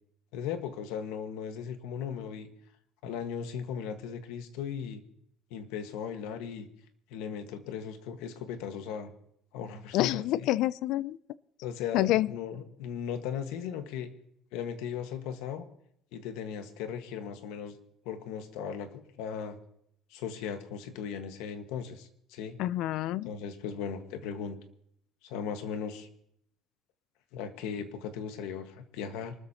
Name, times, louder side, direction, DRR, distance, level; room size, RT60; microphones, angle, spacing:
voice 1, 0.3-2.5 3.0-5.0 5.5-6.7 7.1-9.1 9.5-10.2 11.6-14.1 14.5-15.6 16.1-17.8 18.0-19.6 20.1-22.6 23.2-24.6 25.2-26.1 27.3-29.3, left 7 dB, 90° left, 8 dB, 1.5 m, -37 dB
voice 2, 9.9-11.2 11.9-12.3 22.6-23.3, left 15 dB, 60° left, 20 dB, 0.4 m, -27 dB
26.0 x 13.5 x 2.9 m, 0.73 s
cardioid pair, 175°, 0 cm